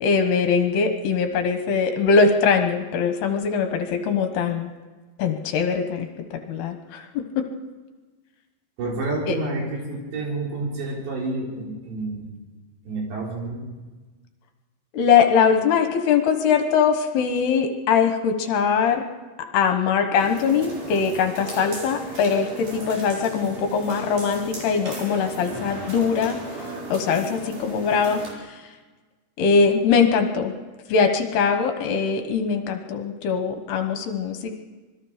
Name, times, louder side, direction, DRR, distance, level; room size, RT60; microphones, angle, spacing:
voice 1, 0.0-4.7 5.2-7.4 9.3-9.4 14.9-19.0 19.5-26.4 26.9-28.6 29.4-30.5 30.9-34.5, left 6 dB, 70° left, 5 dB, 3.0 m, -22 dB
voice 2, 8.8-12.3 12.9-13.6, right 2 dB, 70° right, -2 dB, 6.7 m, -29 dB
sound 1, 20.2-28.3, right 2 dB, 45° right, 5.1 m, -36 dB
26.5 x 21.0 x 5.0 m, 1.3 s
omnidirectional pair, 5.2 m